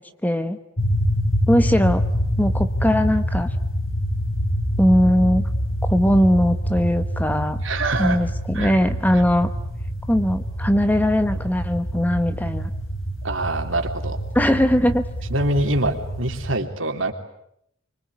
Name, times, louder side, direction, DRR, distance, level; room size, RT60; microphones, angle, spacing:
voice 1, 0.2-0.6 1.5-2.0 2.4-3.5 4.8-5.4 5.8-7.6 8.0-9.5 10.1-12.7 14.3-15.0, equal, 10° left, 10 dB, 1.2 m, -20 dB
sound 1, 0.8-16.6, equal, 80° left, 5.5 m, -26 dB
voice 2, 7.6-8.2 8.5-8.7 9.1-9.2 13.2-14.2 15.3-17.1, right 2 dB, 70° right, 5 dB, 3.4 m, -24 dB
25.0 x 24.5 x 9.7 m, 0.75 s
head